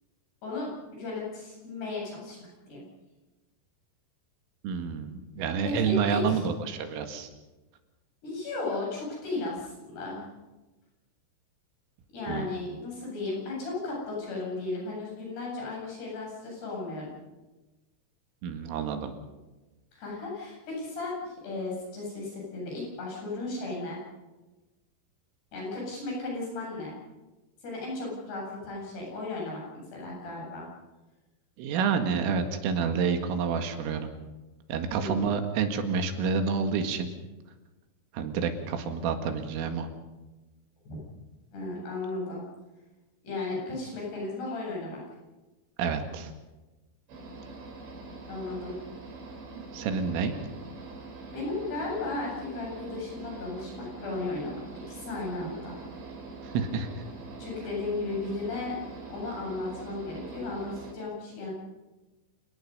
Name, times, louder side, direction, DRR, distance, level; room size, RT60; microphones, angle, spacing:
voice 1, 0.4-2.4 2.7-2.8 5.6-6.5 8.2-10.3 12.1-17.1 19.9-24.0 25.5-26.9 27.6-30.7 34.9-35.3 40.9-41.0 41.5-42.4 43.2-45.0 48.3-48.8 51.3-55.8 57.4-61.5, left 3 dB, 55° left, -3 dB, 10.0 m, -35 dB
voice 2, 4.6-7.3 12.3-12.5 18.4-19.1 31.6-34.1 34.7-37.1 38.1-39.9 45.8-46.3 49.5-50.4 56.5-57.0, right 6 dB, 85° right, 6 dB, 4.5 m, -29 dB
sound 1, 47.1-60.9, right 3 dB, 65° right, 7.3 m, -43 dB
28.5 x 19.5 x 5.5 m, 1.1 s
omnidirectional pair, 5.7 m